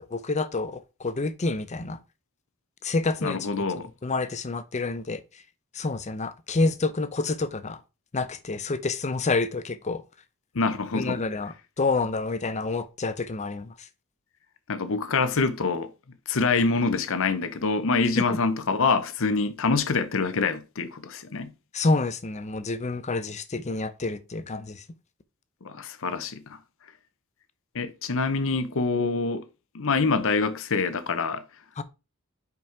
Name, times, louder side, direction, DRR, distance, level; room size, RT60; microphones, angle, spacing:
voice 1, 0.1-2.0 2.8-3.4 4.0-5.2 5.7-7.8 8.1-10.0 10.9-13.7 18.3-18.4 21.7-24.8 31.8-31.9, left 3 dB, 35° left, 0.6 m, -28 dB
voice 2, 3.2-3.9 10.5-11.2 14.7-15.9 16.3-21.5 25.6-26.6 27.7-29.5 29.7-31.4, left 4 dB, 65° left, 0.8 m, -25 dB
5.4 x 5.3 x 4.7 m
head